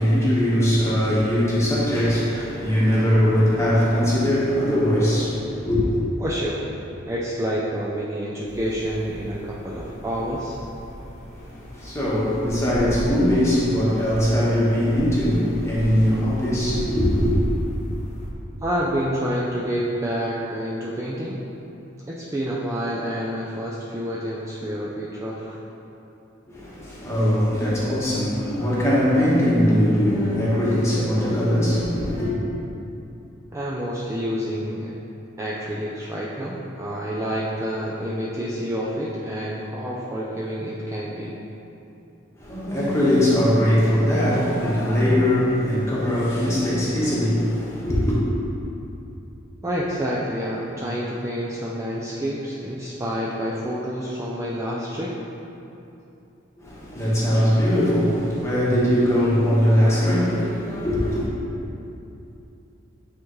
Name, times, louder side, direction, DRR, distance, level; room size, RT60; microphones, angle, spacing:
voice 1, 0.0-6.0 11.3-17.4 26.5-32.3 42.4-48.2 56.6-61.3, equal, 15° left, -8 dB, 1.3 m, -21 dB
voice 2, 6.2-6.6 7.1-10.6 18.6-21.4 22.1-25.6 33.5-34.9 35.4-41.3 49.6-55.1, equal, 15° right, -6 dB, 0.4 m, -28 dB
sound 1, 8.5-18.3, equal, 35° left, 0.7 m, -35 dB
8.8 x 3.6 x 3.1 m, 2.8 s
head